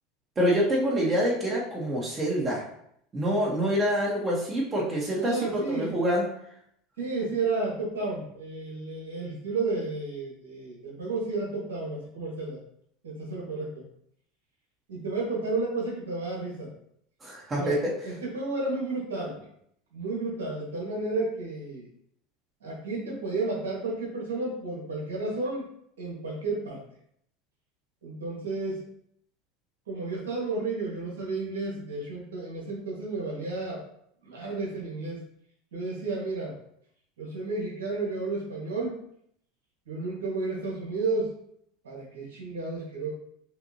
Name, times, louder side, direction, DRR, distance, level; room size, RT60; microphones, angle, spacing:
voice 1, 0.4-2.6 3.1-6.3 17.2-17.9, equal, 25° right, -4 dB, 1.2 m, -26 dB
voice 2, 5.2-5.9 7.0-12.6 13.0-13.8 14.9-16.7 17.5-17.7 18.0-19.5 19.9-21.8 22.6-25.7 26.0-26.8 28.0-28.8 29.9-33.8 34.2-35.2 35.7-36.5 37.2-39.0 39.9-41.3 41.8-43.1, right 3 dB, 85° right, -4 dB, 1.7 m, -32 dB
5.8 x 2.6 x 2.8 m, 0.71 s
hypercardioid pair, 95°, 0 cm